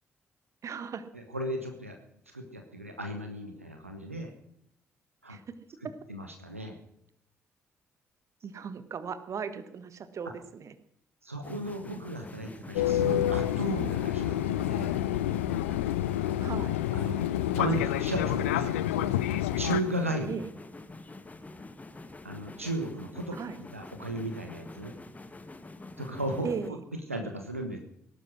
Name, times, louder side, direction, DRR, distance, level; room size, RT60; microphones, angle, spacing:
voice 1, 0.6-1.1 5.3-5.4 5.8-6.0 8.4-10.7 16.4-16.8 20.3-20.5 23.3-23.6 26.4-26.8, right 6 dB, 45° right, 12 dB, 1.4 m, -37 dB
voice 2, 1.1-2.0 2.3-4.3 5.2-5.4 6.1-6.8 11.2-14.9 16.9-17.2 17.6-19.1 19.5-20.3 22.2-24.9 26.0-26.8 27.1-27.8, right 1 dB, 90° right, 4 dB, 1.1 m, -35 dB
sound 1, 11.4-26.7, left 2 dB, 20° left, 1.5 m, -47 dB
Fixed-wing aircraft airplane, 12.8-19.8, left 12 dB, 75° left, 0.5 m, -28 dB
18.5 x 11.5 x 6.3 m, 0.75 s
figure-of-eight pair, 40°, 7 cm